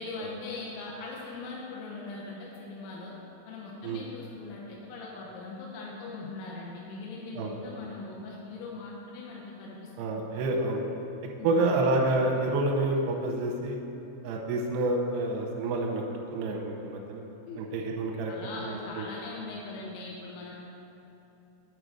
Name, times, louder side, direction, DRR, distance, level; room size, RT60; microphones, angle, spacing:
voice 1, 0.0-3.1 3.5-10.6 11.4-11.7 17.5-17.6 18.2-20.6, left 3 dB, 80° left, -3 dB, 3.1 m, -41 dB
voice 2, 10.0-10.8 11.4-13.8 14.2-17.2 17.6-18.3 18.7-19.1, right 2 dB, 80° right, 0 dB, 2.5 m, -28 dB
9.1 x 4.9 x 6.5 m, 3.0 s
omnidirectional pair, 5.6 m